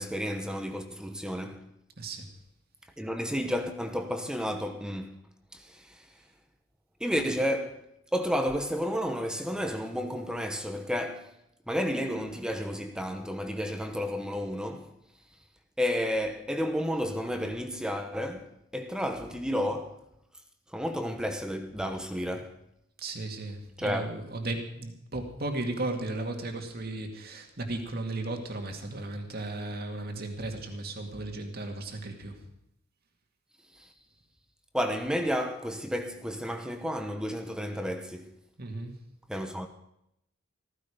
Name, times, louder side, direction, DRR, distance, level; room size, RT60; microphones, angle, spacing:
voice 1, 0.0-1.7 3.0-5.2 5.5-6.1 7.0-11.4 11.7-14.9 15.8-20.0 20.7-22.6 23.8-24.1 33.7-33.9 34.7-38.3 39.3-39.7, equal, 5° right, 1.1 m, -32 dB
voice 2, 2.0-2.3 23.0-32.4 38.6-39.0, right 2 dB, 50° right, 2.2 m, -35 dB
15.0 x 14.5 x 5.0 m
head